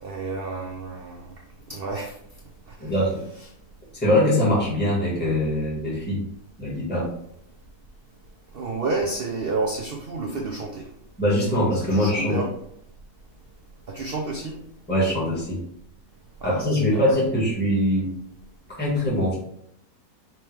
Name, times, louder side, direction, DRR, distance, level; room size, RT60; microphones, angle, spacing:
voice 1, 0.0-1.3 1.7-2.1 2.7-2.9 8.5-10.9 11.7-12.5 13.9-14.6 16.4-17.0, right 3 dB, 65° right, 1 dB, 0.5 m, -30 dB
voice 2, 2.8-3.2 3.9-6.2 6.6-7.1 11.2-12.4 14.9-15.6 16.4-18.1 18.8-19.3, left 1 dB, 5° left, -7 dB, 1.7 m, -22 dB
5.3 x 3.0 x 3.4 m, 0.70 s
omnidirectional pair, 1.7 m